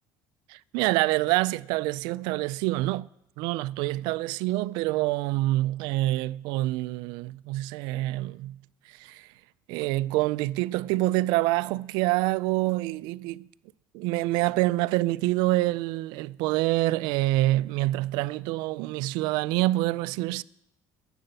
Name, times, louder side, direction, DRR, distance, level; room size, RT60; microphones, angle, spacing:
voice 1, 0.5-3.1 3.4-8.6 8.9-9.3 9.7-13.5 13.9-20.4, right 18 dB, 80° right, 0.3 m, -26 dB
11.0 x 7.8 x 7.8 m
cardioid pair, 140°, 7 cm